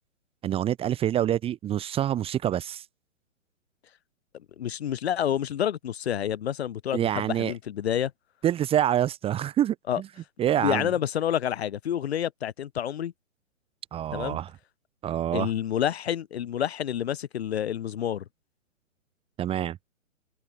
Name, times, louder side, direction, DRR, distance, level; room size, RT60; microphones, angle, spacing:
voice 1, 0.4-2.8 6.9-7.5 8.4-10.1 10.4-10.9 13.9-14.5 15.0-15.5 19.4-19.8, right 11 dB, 15° right, 1.6 m, -26 dB
voice 2, 4.6-8.1 9.9-10.0 10.6-13.1 14.1-14.4 15.3-18.3, left 10 dB, 50° left, 3.4 m, -28 dB
figure-of-eight pair, 130°, 40 cm